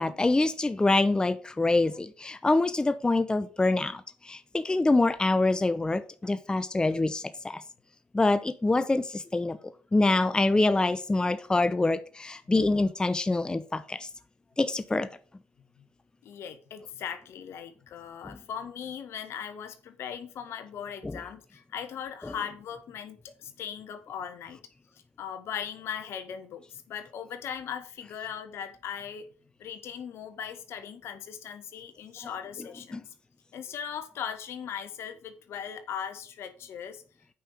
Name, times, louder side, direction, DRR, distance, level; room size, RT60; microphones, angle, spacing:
voice 1, 0.0-7.6 8.1-9.6 9.9-14.1 14.6-15.1 18.3-18.4 21.0-21.2 22.2-22.3 32.9-33.0, left 2 dB, 15° left, 12 dB, 0.7 m, -25 dB
voice 2, 16.2-24.6 25.2-29.2 29.6-33.0 33.5-37.0, left 8 dB, 65° left, 10 dB, 1.4 m, -39 dB
8.5 x 5.5 x 6.2 m, 0.40 s
hypercardioid pair, 60°, 5 cm